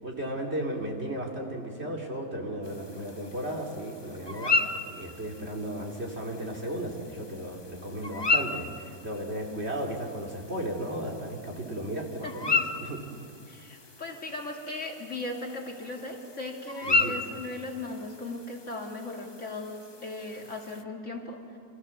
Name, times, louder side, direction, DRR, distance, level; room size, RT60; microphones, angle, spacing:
voice 1, 0.0-13.0 16.8-17.2, right 1 dB, 40° right, 0 dB, 3.1 m, -35 dB
sound 1, 2.6-20.8, left 3 dB, 20° left, 0.7 m, -34 dB
voice 2, 13.5-21.4, left 2 dB, 45° left, 0 dB, 3.1 m, -37 dB
29.0 x 26.5 x 7.2 m, 2.6 s
omnidirectional pair, 1.8 m